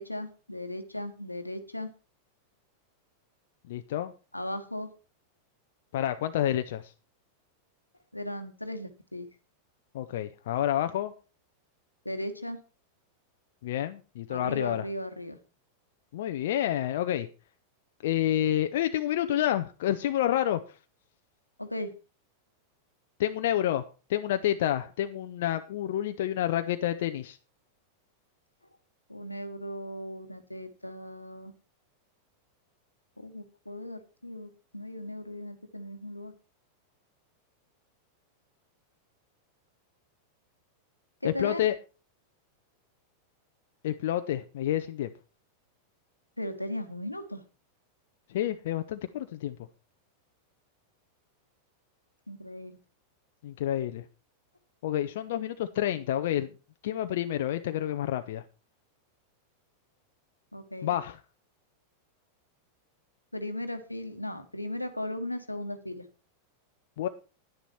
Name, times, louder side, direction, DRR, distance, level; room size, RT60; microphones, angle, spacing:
voice 1, 0.0-1.9 4.3-4.9 8.1-9.3 12.0-12.6 14.3-15.4 21.6-21.9 29.1-31.5 33.2-36.3 41.2-41.7 46.4-47.4 52.3-52.8 60.5-60.9 63.3-66.0, left 1 dB, 85° left, 9 dB, 1.2 m, -37 dB
voice 2, 3.7-4.1 5.9-6.9 9.9-11.1 13.6-14.9 16.1-17.3 18.0-20.6 23.2-27.4 41.2-41.8 43.8-45.1 48.3-49.6 53.4-54.0 54.8-56.5 56.8-58.4 60.8-61.2 67.0-67.1, left 12 dB, 55° left, 8 dB, 0.6 m, -29 dB
10.5 x 9.9 x 4.4 m, 0.33 s
figure-of-eight pair, 90°, 0 cm